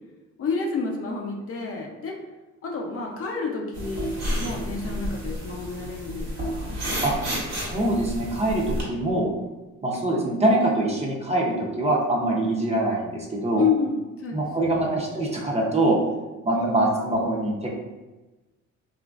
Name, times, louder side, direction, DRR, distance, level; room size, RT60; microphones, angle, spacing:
voice 1, 0.4-2.1 2.6-6.8 13.6-15.0 16.5-16.9, left 5 dB, 50° left, 0 dB, 0.6 m, -29 dB
sound 1, 3.7-8.8, equal, 60° right, 1.1 m, -31 dB
voice 2, 7.5-9.3 9.8-13.6 14.3-16.0 16.4-17.7, right 1 dB, 20° right, -3 dB, 0.6 m, -24 dB
2.9 x 2.5 x 2.3 m, 1.1 s
cardioid pair, 90°, 30 cm